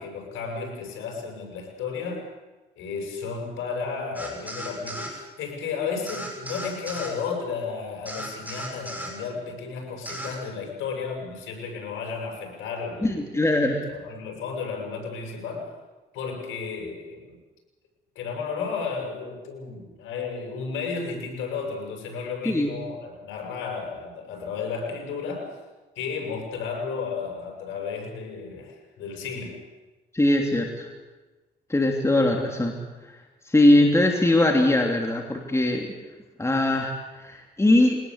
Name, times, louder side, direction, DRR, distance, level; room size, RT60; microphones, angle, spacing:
voice 1, 0.0-2.3 2.8-13.1 13.9-15.7 16.1-17.4 18.2-25.6 26.0-29.6, left 5 dB, 85° left, 1 dB, 7.4 m, -33 dB
sound 1, 4.1-5.1 6.1-7.1 8.0-9.1 10.0-10.3, equal, 10° right, 6.3 m, -35 dB
voice 2, 13.0-13.8 22.4-22.7 30.1-30.9 31.7-32.7 33.4-35.9 36.4-36.9 37.2-38.0, left 1 dB, 15° left, 2 dB, 3.1 m, -21 dB
22.5 x 19.0 x 8.2 m, 1.2 s
cardioid pair, 90°, 20 cm